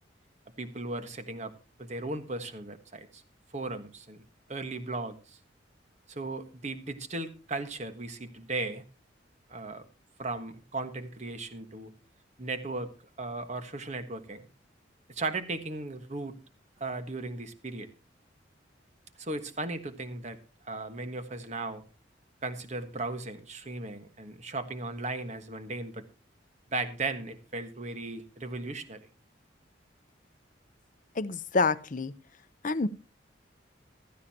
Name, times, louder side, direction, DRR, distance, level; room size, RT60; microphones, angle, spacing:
voice 1, 0.6-1.5 1.8-3.2 3.5-4.2 4.5-5.4 6.1-8.8 9.5-9.9 10.2-11.9 12.4-12.9 13.2-14.4 15.1-16.4 16.8-17.9 19.2-20.4 20.6-21.8 22.4-26.0 26.7-29.1, right 2 dB, 40° right, 1.4 m, -36 dB
voice 2, 31.2-32.1 32.6-32.9, left 4 dB, 45° left, 0.7 m, -27 dB
15.0 x 14.0 x 2.8 m
head